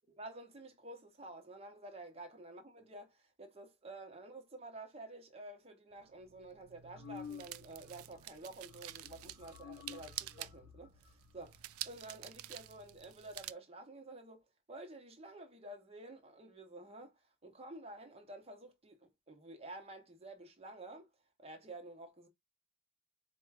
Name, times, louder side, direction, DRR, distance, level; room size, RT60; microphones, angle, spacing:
voice 1, 0.2-14.4 14.7-17.1 17.4-21.1 21.4-22.3, right 2 dB, 30° right, 0.9 m, -51 dB
sound 1, 6.0-13.5, right 14 dB, 80° right, 0.3 m, -49 dB
sound 2, 6.9-8.4 8.7-11.9, left 7 dB, 60° left, 0.4 m, -52 dB
4.4 x 2.2 x 4.7 m
head